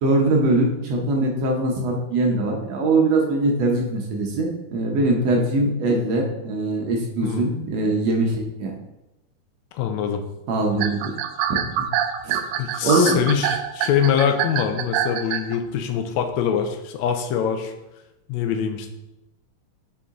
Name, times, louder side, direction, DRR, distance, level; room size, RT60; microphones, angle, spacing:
voice 1, 0.0-8.7 10.5-11.1 11.5-11.9 12.2-12.4 12.8-13.4, right 2 dB, 65° right, 0 dB, 1.8 m, -22 dB
voice 2, 9.7-10.2 12.6-17.7 18.3-18.9, left 8 dB, 80° left, 6 dB, 1.7 m, -24 dB
sound 1, 10.7-15.6, right 11 dB, 85° right, 2.2 m, -25 dB
6.9 x 5.4 x 3.7 m, 0.95 s
omnidirectional pair, 3.8 m